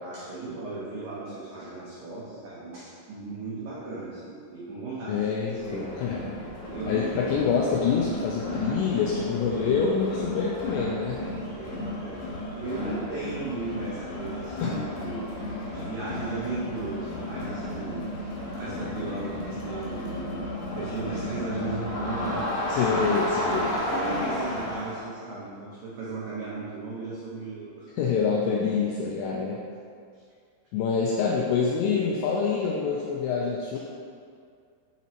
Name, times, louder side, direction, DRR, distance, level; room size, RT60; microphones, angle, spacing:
voice 1, 0.0-5.9 6.6-7.2 11.5-12.3 12.5-20.5 20.7-23.0 23.7-28.0 31.2-31.5, right 3 dB, 85° right, -7 dB, 1.9 m, -36 dB
voice 2, 5.1-6.2 6.9-11.2 14.6-14.8 22.7-23.8 28.0-29.6 30.7-33.8, left 5 dB, 85° left, -2 dB, 2.5 m, -26 dB
Crowd, 5.6-25.0, left 1 dB, 65° left, 3.5 m, -33 dB
7.3 x 7.1 x 2.9 m, 2.3 s
omnidirectional pair, 5.5 m